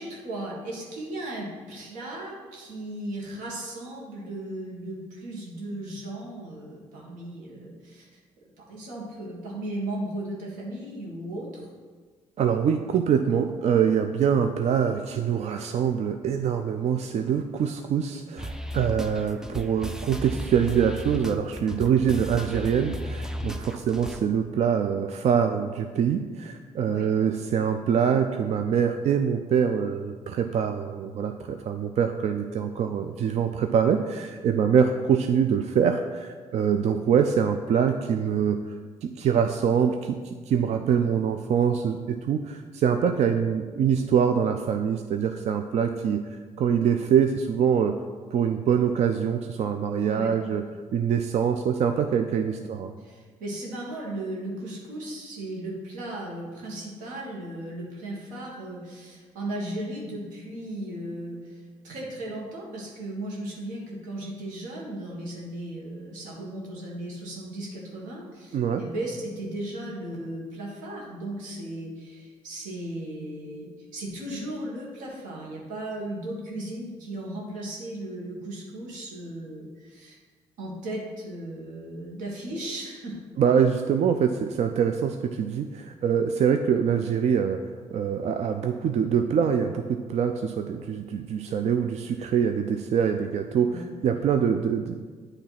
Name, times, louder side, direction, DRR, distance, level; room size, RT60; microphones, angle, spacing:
voice 1, 0.0-8.1 8.6-11.7 26.9-27.1 50.0-50.3 52.4-52.6 53.0-80.2 80.6-83.2 93.7-93.9, right 1 dB, 90° right, -3 dB, 1.8 m, -36 dB
voice 2, 12.4-38.6 39.0-47.9 48.3-50.6 50.9-52.9 68.5-68.8 83.4-87.6 87.9-95.0, right 7 dB, 55° right, 6 dB, 0.4 m, -24 dB
sound 1, 18.4-24.2, equal, 5° right, 0.5 m, -35 dB
8.6 x 3.3 x 5.8 m, 1.5 s
cardioid pair, 80°, 13 cm